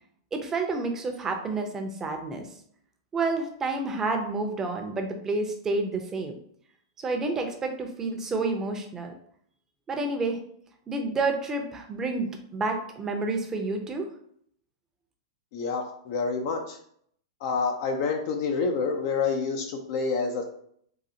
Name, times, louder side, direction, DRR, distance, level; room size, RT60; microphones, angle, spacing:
voice 1, 0.3-2.5 3.1-6.3 7.0-9.1 9.9-10.4 10.9-14.1, right 3 dB, 20° right, 4 dB, 0.7 m, -29 dB
voice 2, 15.5-16.8 17.4-20.5, left 4 dB, 55° left, 3 dB, 0.5 m, -28 dB
3.9 x 2.7 x 2.7 m, 0.65 s
hypercardioid pair, 105°, 2 cm